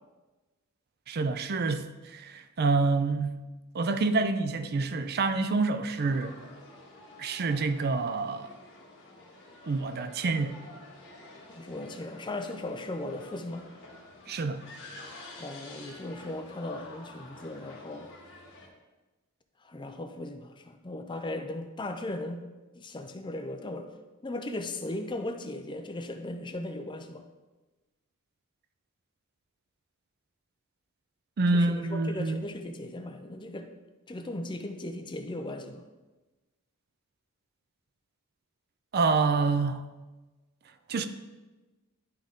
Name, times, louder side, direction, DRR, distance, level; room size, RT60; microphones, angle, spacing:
voice 1, 1.1-3.4 3.7-6.3 7.2-8.5 9.7-10.6 14.3-14.6 31.4-32.4 38.9-39.9 40.9-41.1, right 3 dB, 45° right, 0.4 m, -27 dB
sound 1, 6.0-18.7, left 2 dB, 55° left, 1.6 m, -49 dB
voice 2, 11.5-13.7 15.4-18.1 19.6-22.4 22.7-23.9 24.2-27.2 31.5-33.7 34.1-35.8, left 1 dB, 20° left, 0.5 m, -37 dB
11.5 x 3.8 x 3.6 m
head